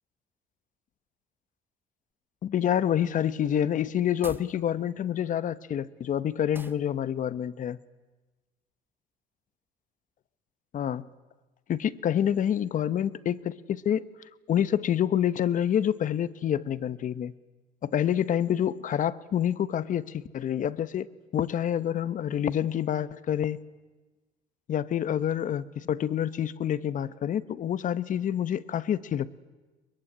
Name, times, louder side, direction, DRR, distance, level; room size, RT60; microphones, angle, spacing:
voice 1, 2.4-7.8 10.7-11.1 11.7-14.0 14.5-17.3 17.8-21.1 21.3-23.6 24.7-29.4, left 10 dB, 50° left, 16 dB, 1.0 m, -27 dB
sound 1, 4.2-4.6 6.5-6.9, right 2 dB, 10° right, 1.0 m, -43 dB
23.0 x 21.5 x 9.9 m, 1.2 s
cardioid pair, 110°, 17 cm